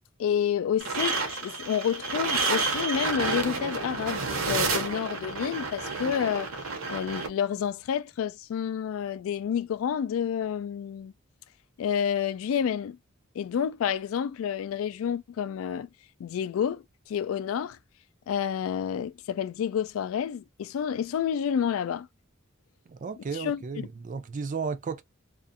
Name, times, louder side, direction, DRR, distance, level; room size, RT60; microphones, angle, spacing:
voice 1, 0.2-6.5 6.9-11.1 11.8-13.0 13.4-15.9 16.2-17.8 18.3-22.1 23.3-23.6, left 8 dB, 75° left, 0.3 m, -29 dB
sound 1, 0.8-7.3, right 4 dB, 80° right, 0.8 m, -30 dB
voice 2, 22.9-25.0, right 5 dB, 40° right, 0.4 m, -34 dB
2.5 x 2.5 x 2.5 m
head